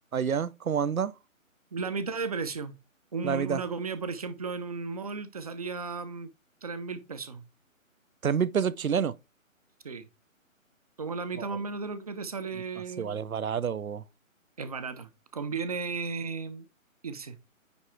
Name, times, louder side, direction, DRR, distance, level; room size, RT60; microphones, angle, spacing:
voice 1, 0.1-1.1 3.2-3.6 8.2-9.1 11.4-11.5 13.0-14.0, right 7 dB, 85° right, 0.7 m, -28 dB
voice 2, 1.7-2.7 3.1-6.3 6.6-7.4 9.8-10.1 11.0-13.2 14.6-16.7 17.0-17.4, right 4 dB, 30° right, 0.7 m, -35 dB
9.6 x 3.5 x 4.4 m
figure-of-eight pair, 150°, 41 cm